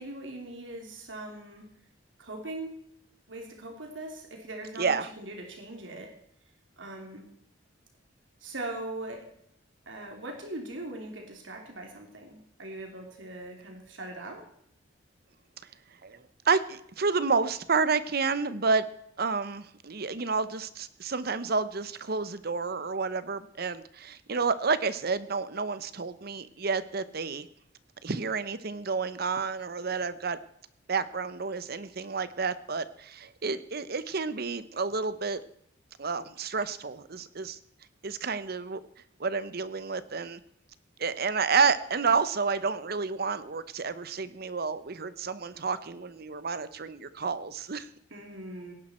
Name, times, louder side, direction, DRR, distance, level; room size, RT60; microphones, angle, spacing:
voice 1, 0.0-1.6 2.2-2.7 3.3-6.1 6.8-7.2 8.4-9.3 9.9-14.4 48.1-48.7, right 2 dB, 80° right, 2 dB, 3.2 m, -40 dB
voice 2, 4.8-5.1 16.0-16.2 16.4-18.8 19.2-27.5 28.0-30.4 30.9-35.4 36.0-37.6 38.0-38.8 39.2-40.4 41.0-47.9, right 4 dB, 55° right, 14 dB, 0.9 m, -30 dB
18.0 x 11.0 x 4.4 m, 0.70 s
head